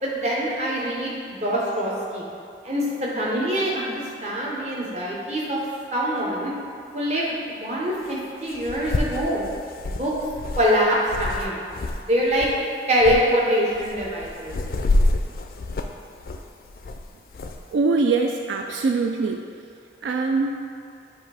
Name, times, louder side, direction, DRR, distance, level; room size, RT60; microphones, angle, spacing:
voice 1, 0.0-2.3 2.6-5.6 5.9-6.6 6.9-7.3 7.6-9.4 9.9-10.2 10.5-11.6 12.0-12.5 12.9-14.6, equal, 40° right, -4 dB, 0.9 m, -24 dB
sound 1, 6.2-6.3 8.1-8.2 8.5-12.0 12.3-12.6 13.0-13.2 13.7-17.6, left 2 dB, 55° left, 0.3 m, -28 dB
voice 2, 17.7-19.5 20.0-20.6, right 3 dB, 85° right, 3 dB, 0.3 m, -23 dB
7.6 x 2.6 x 4.8 m, 2.4 s
head